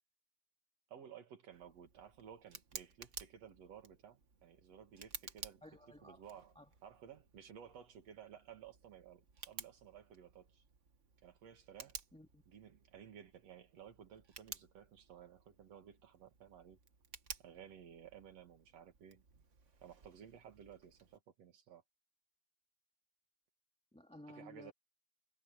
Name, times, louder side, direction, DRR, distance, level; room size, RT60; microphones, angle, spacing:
voice 1, 0.9-5.6 6.0-6.5 6.8-10.6 11.2-12.0 12.5-16.8 17.4-19.2 19.8-21.8 24.3-24.7, right 8 dB, 60° right, 3.0 m, -56 dB
Tick, 1.5-21.2, right 5 dB, 40° right, 1.1 m, -55 dB
voice 2, 5.6-6.2 6.6-6.7 12.1-12.4 23.9-24.7, left 1 dB, ahead, 1.8 m, -55 dB
omnidirectional pair, 3.3 m